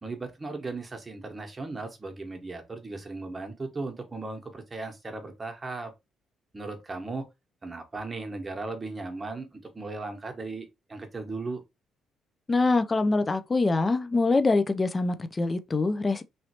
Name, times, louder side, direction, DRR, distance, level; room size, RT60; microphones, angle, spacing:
voice 1, 0.0-5.9 6.5-7.2 7.6-11.6, right 3 dB, 30° right, 1.1 m, -37 dB
voice 2, 12.5-16.2, left 3 dB, 30° left, 0.4 m, -24 dB
3.1 x 2.7 x 2.9 m
supercardioid pair, 60°, 0 cm